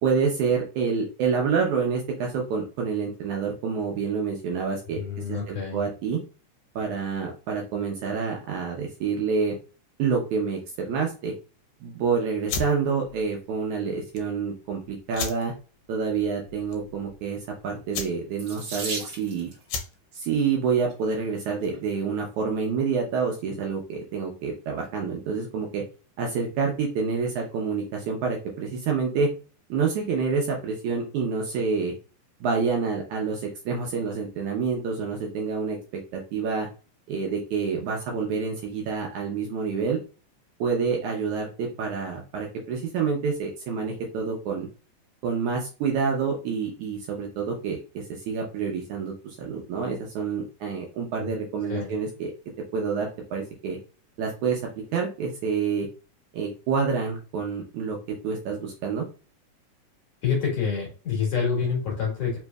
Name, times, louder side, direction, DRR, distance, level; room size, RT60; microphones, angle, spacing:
voice 1, 0.0-5.0 5.3-6.2 6.8-9.6 10.0-11.3 11.8-15.5 15.9-19.5 20.1-25.8 26.2-29.3 29.7-31.9 32.4-35.8 36.1-36.7 37.1-40.0 40.6-44.7 45.2-52.3 52.7-53.8 54.2-54.6 54.9-55.9 56.3-58.0 58.2-59.1, right 5 dB, 75° right, 0 dB, 1.9 m, -27 dB
voice 2, 5.0-5.9 51.7-51.9 60.2-62.4, left 6 dB, 55° left, -3 dB, 2.1 m, -27 dB
sound 1, 12.4-21.9, left 5 dB, 80° left, 2.4 m, -38 dB
Water tap faucet / Sink (filling or washing), 18.4-19.6 20.6-21.0 21.7-21.8 22.2-22.3, right 3 dB, 50° right, 1.3 m, -36 dB
5.3 x 3.0 x 2.3 m, 0.35 s
omnidirectional pair, 4.0 m